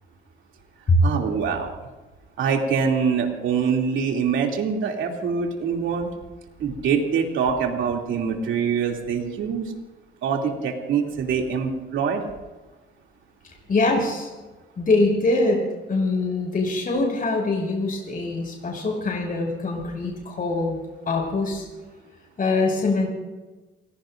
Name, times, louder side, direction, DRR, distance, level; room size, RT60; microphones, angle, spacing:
voice 1, 1.0-1.7 2.4-6.1 6.6-9.6 10.2-12.2, right 6 dB, 75° right, 1 dB, 2.8 m, -24 dB
voice 2, 13.7-14.3 14.8-20.8 21.1-21.6 22.4-23.1, left 2 dB, 45° left, 1 dB, 5.9 m, -23 dB
29.0 x 17.5 x 2.6 m, 1.2 s
cardioid pair, 90°, 20 cm